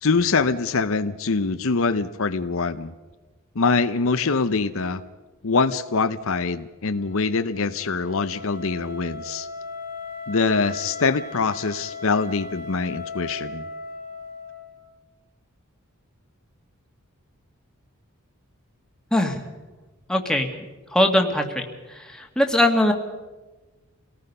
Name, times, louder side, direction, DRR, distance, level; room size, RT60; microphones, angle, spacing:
voice 1, 0.0-2.9 3.6-5.0 5.4-9.5 10.3-13.6, left 4 dB, 65° left, 10 dB, 0.8 m, -24 dB
Wind instrument woodwind instrument, 6.9-14.9, left 3 dB, 45° right, 6.8 m, -37 dB
voice 2, 19.1-19.4 20.1-20.5 20.9-21.6 22.0-22.9, left 1 dB, 5° left, 2 dB, 1.9 m, -20 dB
28.0 x 18.5 x 5.5 m, 1.2 s
head